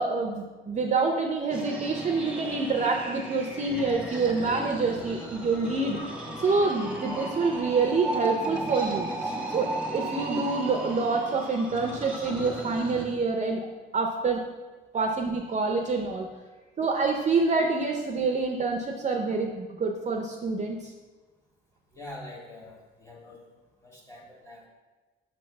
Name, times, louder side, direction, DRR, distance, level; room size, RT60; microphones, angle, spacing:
voice 1, 0.0-13.7 13.9-14.4 14.9-16.3 16.8-20.9, right 4 dB, 35° right, 2 dB, 0.5 m, -27 dB
sound 1, 1.5-13.1, right 1 dB, 5° right, 1.0 m, -35 dB
voice 2, 21.9-23.4 23.8-24.7, left 1 dB, 15° left, -3 dB, 1.5 m, -45 dB
5.9 x 3.2 x 5.7 m, 1.3 s
cardioid pair, 130°, 21 cm